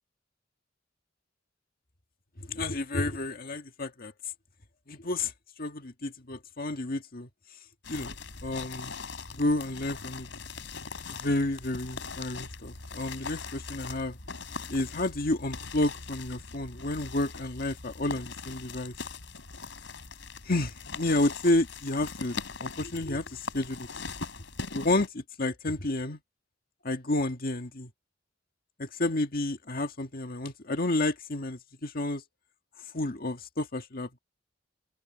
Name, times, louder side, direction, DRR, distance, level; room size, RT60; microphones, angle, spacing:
voice 1, 2.4-4.1 4.9-5.3 5.6-7.3 7.9-8.2 8.4-8.9 9.3-10.3 11.1-14.2 14.7-18.9 20.4-23.9 24.7-26.2 26.8-27.9 28.8-32.2 32.9-34.2, left 2 dB, 50° left, 1.8 m, -30 dB
sound 1, 7.8-25.1, left 4 dB, 80° left, 3.9 m, -41 dB
open air
head